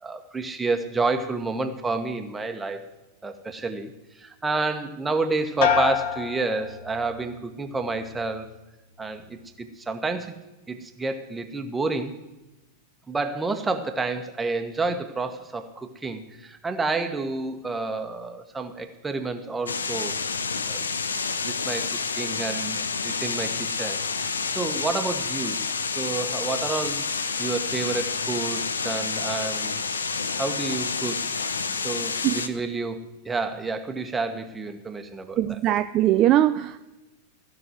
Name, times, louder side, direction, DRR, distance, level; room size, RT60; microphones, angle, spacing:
voice 1, 0.0-2.8 3.2-8.5 9.0-10.4 10.7-12.1 13.1-20.1 20.7-21.9 22.2-22.8 23.0-24.3 24.5-25.6 25.9-27.1 27.4-29.8 30.3-31.3 31.8-35.6, right 3 dB, 10° right, 6 dB, 1.3 m, -29 dB
sound 1, 5.6-7.3 7.7-8.3, left 8 dB, 50° left, 1.1 m, -27 dB
sound 2, 19.7-32.5, left 5 dB, 70° left, 0.7 m, -29 dB
voice 2, 32.0-32.4 35.4-36.8, right 13 dB, 35° right, 10 dB, 0.4 m, -21 dB
15.0 x 6.3 x 9.3 m, 1.0 s
figure-of-eight pair, 90°, 0 cm